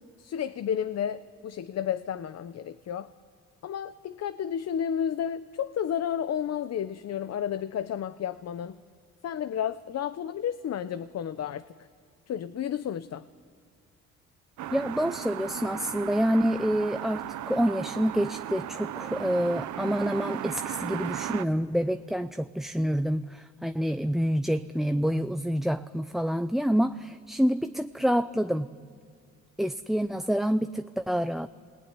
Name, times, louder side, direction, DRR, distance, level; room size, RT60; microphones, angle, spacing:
voice 1, 0.2-3.1 3.6-8.8 9.2-11.6 12.3-13.2, left 9 dB, 55° left, 12 dB, 0.9 m, -32 dB
sound 1, 14.6-21.4, right 12 dB, 75° right, 1.0 m, -36 dB
voice 2, 14.7-28.7 29.6-31.5, equal, ahead, 9 dB, 0.7 m, -27 dB
28.0 x 19.5 x 9.9 m, 2.1 s
cardioid pair, 90°, 30 cm